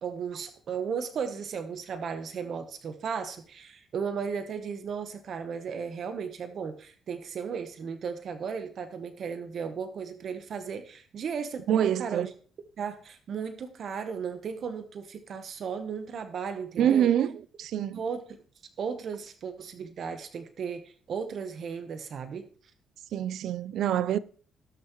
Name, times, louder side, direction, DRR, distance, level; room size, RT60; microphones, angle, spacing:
voice 1, 0.0-12.3 12.8-17.1 17.9-18.2 18.8-22.4, right 6 dB, 60° right, 1.1 m, -35 dB
voice 2, 11.7-12.3 16.8-18.0 23.1-24.2, right 10 dB, 75° right, 0.5 m, -26 dB
18.5 x 6.5 x 3.1 m
cardioid pair, 90°, 0 cm